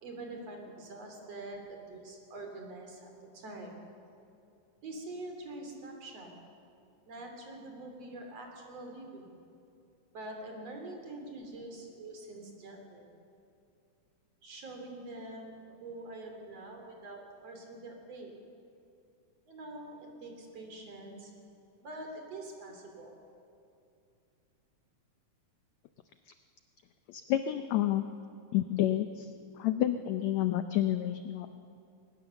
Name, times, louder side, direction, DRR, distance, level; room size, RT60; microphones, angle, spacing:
voice 1, 0.0-3.7 4.8-6.4 7.1-9.4 10.1-13.1 14.4-18.3 19.5-21.3 21.8-23.2, right 2 dB, 50° right, 2 dB, 3.7 m, -45 dB
voice 2, 27.1-28.0 28.5-29.3 29.6-31.5, left 12 dB, 90° left, 9 dB, 1.5 m, -29 dB
21.5 x 19.5 x 7.0 m, 2.6 s
omnidirectional pair, 3.9 m